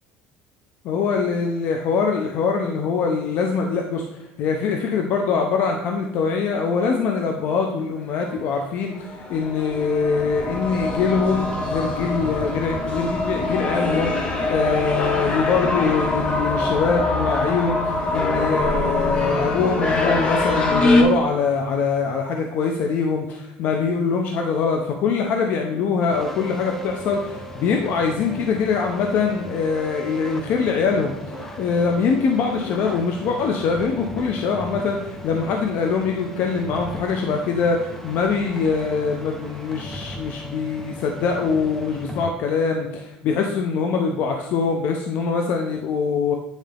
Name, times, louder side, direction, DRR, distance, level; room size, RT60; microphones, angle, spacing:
voice 1, 0.8-4.0 4.4-46.3, left 5 dB, 60° left, 3 dB, 0.9 m, -23 dB
sound 1, 8.3-8.4 9.0-21.0, left 2 dB, 30° left, 1.4 m, -23 dB
sound 2, 26.1-42.3, equal, 10° left, 1.0 m, -37 dB
9.2 x 4.4 x 3.5 m, 0.94 s
cardioid pair, 120°, 3 cm